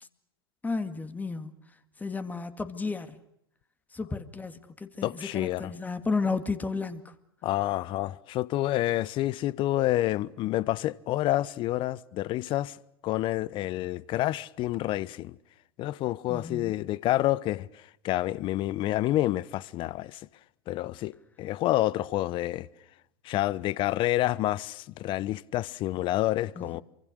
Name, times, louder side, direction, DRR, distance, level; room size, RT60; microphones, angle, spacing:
voice 1, 0.6-1.6 2.0-3.2 3.9-7.1 16.3-16.8 26.6-26.8, left 4 dB, 15° left, 2.1 m, -33 dB
voice 2, 5.0-5.7 7.4-12.8 13.0-15.4 15.8-20.2 20.7-22.7 23.2-26.8, left 15 dB, 40° left, 0.9 m, -28 dB
26.5 x 24.5 x 6.4 m
hypercardioid pair, 95°, 12 cm